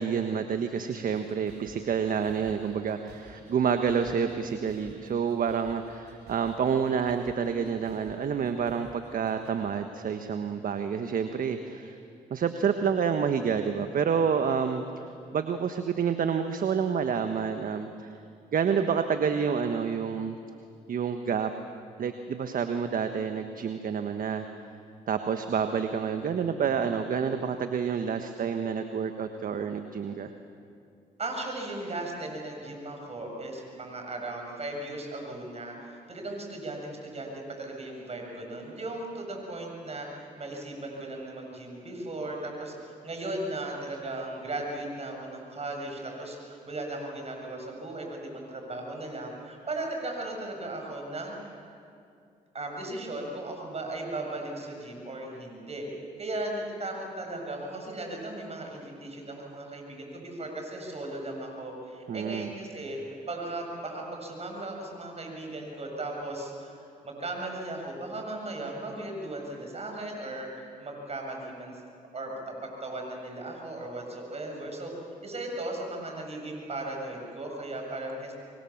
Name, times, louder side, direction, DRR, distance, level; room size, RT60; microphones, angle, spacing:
voice 1, 0.0-12.0 12.3-15.1 15.3-18.1 18.5-20.4 20.9-21.5 22.0-24.4 25.1-30.3 62.1-62.5, right 6 dB, 55° right, 8 dB, 1.4 m, -28 dB
sound 1, 1.1-9.5, right 2 dB, 80° right, 5.5 m, -54 dB
voice 2, 31.2-51.4 52.5-55.9 56.2-63.0 63.3-66.8 67.0-71.8 72.1-74.9 75.2-78.3, right 2 dB, 40° right, 1 dB, 7.3 m, -37 dB
26.0 x 23.0 x 7.3 m, 2.4 s
supercardioid pair, 55°, 17 cm